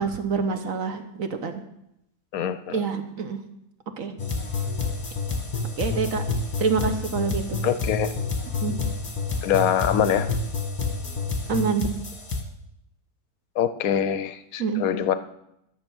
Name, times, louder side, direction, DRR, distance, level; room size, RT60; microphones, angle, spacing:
voice 1, 0.0-1.6 2.7-3.4 4.0-4.2 5.8-6.2 6.6-7.6 8.6-8.8 11.5-11.9 14.6-14.9, right 5 dB, 55° right, 8 dB, 1.2 m, -26 dB
voice 2, 2.3-2.8 7.6-8.1 9.4-10.3 13.6-15.1, left 9 dB, 65° left, 13 dB, 0.9 m, -24 dB
sound 1, 4.2-12.4, left 3 dB, 20° left, 1.1 m, -29 dB
12.5 x 6.6 x 6.2 m, 0.81 s
omnidirectional pair, 1.9 m